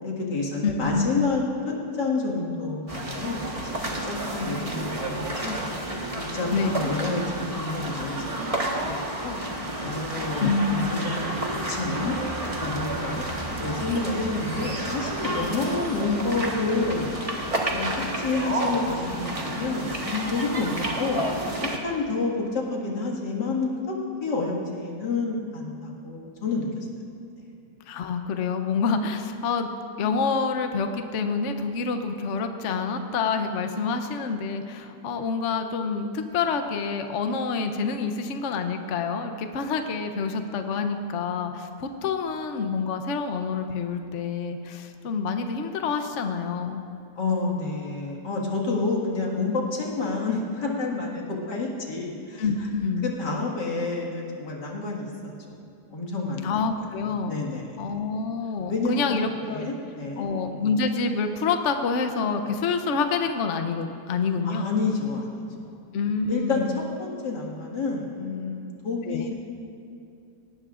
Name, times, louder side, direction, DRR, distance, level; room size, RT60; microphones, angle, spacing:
voice 1, 0.0-3.7 4.0-8.5 8.9-9.4 9.8-12.2 12.6-13.2 13.6-17.1 17.7-20.7 21.0-21.2 21.6-26.7 47.2-52.4 53.0-55.1 55.6-56.6 57.3-57.7 58.7-60.3 64.4-65.4 66.3-69.3, left 3 dB, 90° left, -2 dB, 2.5 m, -29 dB
voice 2, 0.6-1.3 6.5-6.8 10.4-10.9 27.9-29.7 30.0-46.8 52.4-53.1 56.4-57.4 57.8-59.7 60.2-64.7 65.9-66.8 69.1-69.3, left 5 dB, 55° left, 6 dB, 0.9 m, -27 dB
sound 1, 2.9-21.8, right 1 dB, 20° right, 1.3 m, -30 dB
19.0 x 17.5 x 2.5 m, 2.7 s
omnidirectional pair, 1.8 m